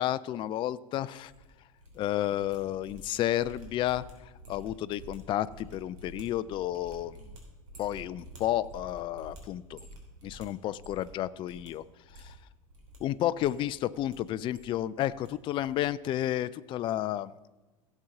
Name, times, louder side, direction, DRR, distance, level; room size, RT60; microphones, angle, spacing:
voice 1, 0.0-1.3 1.9-7.3 7.8-9.8 10.2-11.8 12.1-12.3 13.0-17.5, left 13 dB, 30° left, 15 dB, 0.4 m, -31 dB
sound 1, 1.1-2.0 2.2-11.2 11.4-11.7 12.0-13.0 13.3-14.1 14.4-15.3 15.6-15.9 16.1-16.4, right 1 dB, 65° right, 3.1 m, -50 dB
16.0 x 7.3 x 3.8 m, 1.1 s
figure-of-eight pair, 80°, 18 cm